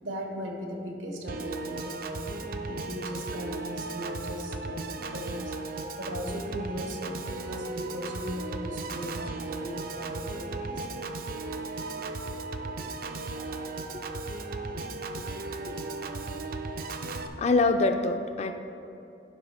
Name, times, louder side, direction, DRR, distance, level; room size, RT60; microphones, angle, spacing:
voice 1, 0.0-11.0, equal, 85° right, 1 dB, 1.3 m, -38 dB
Piano / Organ, 1.3-17.3, right 3 dB, 50° right, 0.4 m, -36 dB
voice 2, 17.4-18.5, left 3 dB, 35° left, 7 dB, 0.4 m, -24 dB
11.5 x 5.9 x 3.4 m, 2.8 s
head